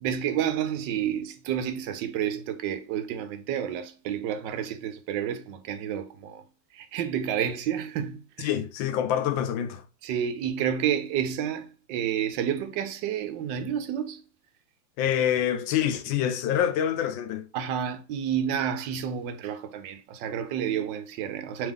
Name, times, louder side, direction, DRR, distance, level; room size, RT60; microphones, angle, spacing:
voice 1, 0.0-6.4 6.7-8.5 10.0-14.2 17.5-21.7, right 9 dB, 75° right, 1.2 m, -30 dB
voice 2, 8.4-9.8 15.0-17.5, left 10 dB, 85° left, 1.4 m, -26 dB
3.6 x 3.3 x 3.5 m
omnidirectional pair, 2.0 m